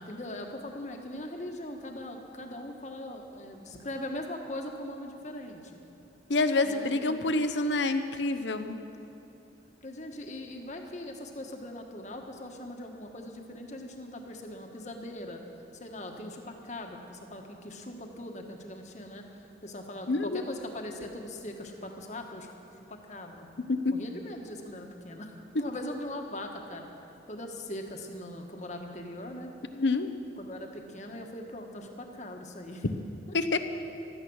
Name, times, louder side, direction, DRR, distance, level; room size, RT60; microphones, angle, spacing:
voice 1, 0.0-5.8 6.6-7.5 8.6-9.1 9.8-15.4 15.8-22.5 22.9-23.5 23.8-26.9 27.3-29.8 30.4-32.9, left 1 dB, 40° left, 3 dB, 1.5 m, -41 dB
voice 2, 6.3-8.8 20.1-20.4 23.7-23.9 29.8-30.1 33.3-33.6, left 3 dB, 75° left, 9 dB, 0.9 m, -27 dB
16.0 x 12.5 x 6.3 m, 2.9 s
head